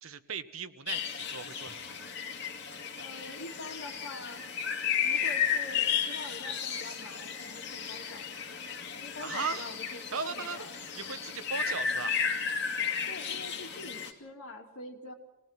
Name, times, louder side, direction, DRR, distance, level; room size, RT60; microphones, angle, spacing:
voice 1, 0.0-2.1 9.2-9.7 10.1-10.6 10.9-12.2, right 5 dB, 85° right, 11 dB, 1.1 m, -38 dB
sound 1, 0.9-14.1, left 7 dB, 55° left, 2.2 m, -34 dB
voice 2, 3.0-4.4 5.0-8.6 9.0-10.7 13.1-15.1, left 2 dB, 90° left, 2 dB, 2.9 m, -45 dB
26.5 x 19.0 x 6.0 m, 0.91 s
head